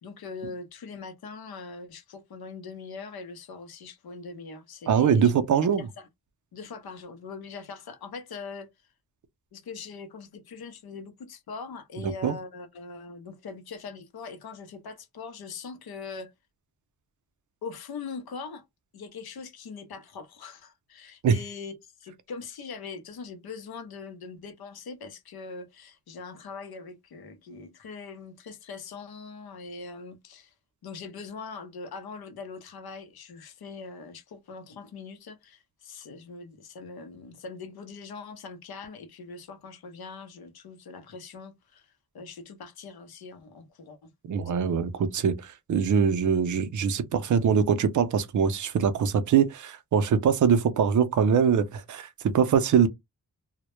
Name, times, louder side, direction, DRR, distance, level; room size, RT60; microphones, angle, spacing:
voice 1, 0.0-5.4 5.8-6.1 6.5-8.7 9.5-16.3 17.6-18.6 18.9-21.7 22.0-30.5 30.8-44.1 44.5-44.7, left 4 dB, 85° left, 0.6 m, -42 dB
voice 2, 4.9-5.9 12.0-12.3 21.2-21.4 44.3-52.9, right 7 dB, 55° right, 0.5 m, -23 dB
2.1 x 2.0 x 3.0 m
wide cardioid pair, 95°, 36 cm